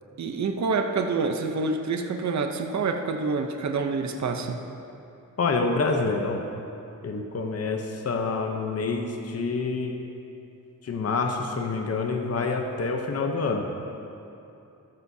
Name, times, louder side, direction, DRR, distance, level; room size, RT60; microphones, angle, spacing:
voice 1, 0.2-4.6, right 4 dB, 55° right, 4 dB, 0.7 m, -27 dB
voice 2, 5.4-6.4 7.0-9.9 10.8-13.6, left 4 dB, 45° left, 3 dB, 0.8 m, -27 dB
14.0 x 12.5 x 2.8 m, 2.8 s
wide cardioid pair, 140°, 34 cm